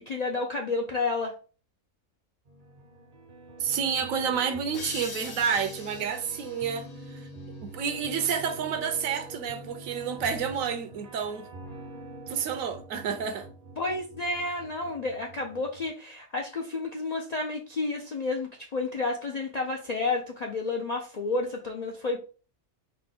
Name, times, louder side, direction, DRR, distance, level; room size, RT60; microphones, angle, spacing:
voice 1, 0.0-1.3 13.8-22.2, left 3 dB, 80° left, 0.3 m, -31 dB
sound 1, 2.5-15.9, right 1 dB, 45° right, 0.5 m, -45 dB
voice 2, 3.6-7.3 7.6-11.5 12.3-13.5, right 7 dB, 75° right, 1.0 m, -30 dB
sound 2, 4.7-8.1, left 4 dB, 60° left, 0.9 m, -43 dB
4.1 x 2.2 x 3.4 m
omnidirectional pair, 1.4 m